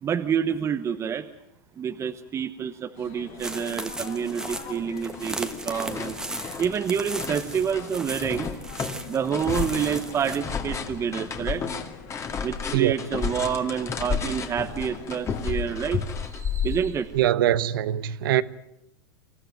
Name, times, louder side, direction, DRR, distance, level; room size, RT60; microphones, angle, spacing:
voice 1, 0.0-1.3 1.8-6.2 6.6-8.5 9.1-11.6 12.4-17.1, right 7 dB, 25° right, 1.0 m, -28 dB
sound 1, 2.9-16.0, left 7 dB, 55° left, 5.0 m, -44 dB
sound 2, 3.4-10.4, right 2 dB, 5° right, 1.3 m, -37 dB
sound 3, 4.1-4.2 4.5-5.3 5.5-17.2, left 6 dB, 25° left, 2.2 m, -32 dB
voice 2, 17.1-18.4, right 12 dB, 75° right, 1.0 m, -22 dB
26.5 x 14.0 x 9.3 m
supercardioid pair, 125°, 12 cm